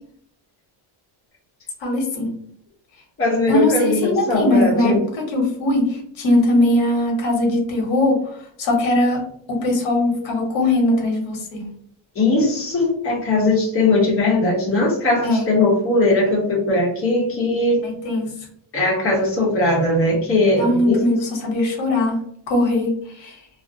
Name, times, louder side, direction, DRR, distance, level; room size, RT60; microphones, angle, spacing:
voice 1, 1.8-2.3 3.5-8.2 8.6-9.2 9.5-11.7 15.2-15.4 17.8-18.3 20.6-22.2 22.5-23.4, left 1 dB, 65° left, 1 dB, 0.9 m, -20 dB
voice 2, 3.2-5.0 12.1-17.9 18.7-21.1, left 2 dB, 25° left, -3 dB, 0.8 m, -19 dB
2.4 x 2.0 x 2.5 m, 0.67 s
cardioid pair, 175°, 50 cm